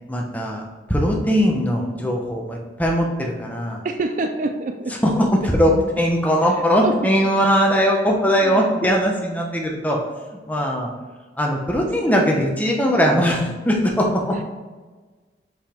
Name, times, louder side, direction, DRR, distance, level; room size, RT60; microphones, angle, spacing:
voice 1, 0.1-0.6 0.9-3.8 5.0-5.3 5.5-10.0 10.3-10.9 11.4-14.4, equal, 10° left, -1 dB, 0.9 m, -20 dB
voice 2, 2.0-2.3 3.8-5.3 5.7-5.8 6.8-7.0 8.4-8.8 11.8-12.2 12.8-13.0, right 2 dB, 45° right, 6 dB, 0.4 m, -28 dB
5.5 x 5.4 x 4.5 m, 1.3 s
head